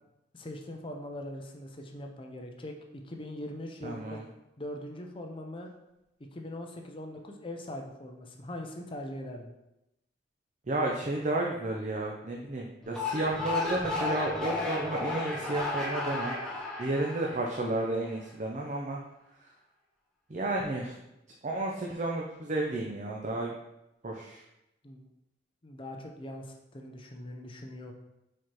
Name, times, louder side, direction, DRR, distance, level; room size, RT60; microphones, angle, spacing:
voice 1, 0.3-4.2 4.6-5.7 6.3-9.5 24.8-25.0 25.6-27.9, left 1 dB, 30° left, 3 dB, 0.6 m, -41 dB
voice 2, 3.8-4.2 10.7-16.4 16.8-19.0 19.4-19.5 20.3-20.9 21.4-23.5 24.0-24.4, right 2 dB, 40° right, -1 dB, 0.6 m, -32 dB
sound 1, 12.8-18.1, left 3 dB, 5° left, 1.0 m, -34 dB
4.7 x 4.3 x 4.6 m, 0.89 s
head